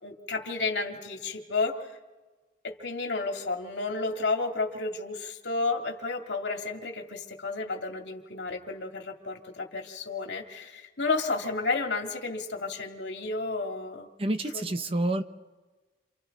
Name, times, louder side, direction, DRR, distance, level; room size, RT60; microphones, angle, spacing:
voice 1, 0.0-1.7 2.6-14.1 14.5-14.7, left 3 dB, 75° left, 2 dB, 2.4 m, -32 dB
voice 2, 14.2-15.2, right 1 dB, 30° right, 8 dB, 0.9 m, -28 dB
29.5 x 27.5 x 4.1 m, 1.3 s
head